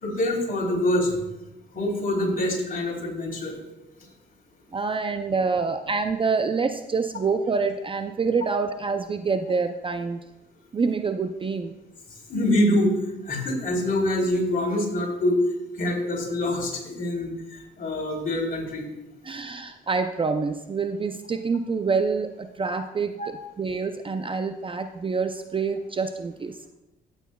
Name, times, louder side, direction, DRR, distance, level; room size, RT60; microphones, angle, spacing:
voice 1, 0.0-1.2 1.7-3.6 12.3-12.9 13.2-15.4 15.8-18.9 23.2-23.3, left 1 dB, 45° left, -2 dB, 3.6 m, -25 dB
voice 2, 4.7-10.2 10.7-11.7 19.2-26.6, right 4 dB, 25° right, 8 dB, 0.5 m, -26 dB
15.0 x 8.1 x 2.3 m, 0.97 s
cardioid pair, 90°, 20 cm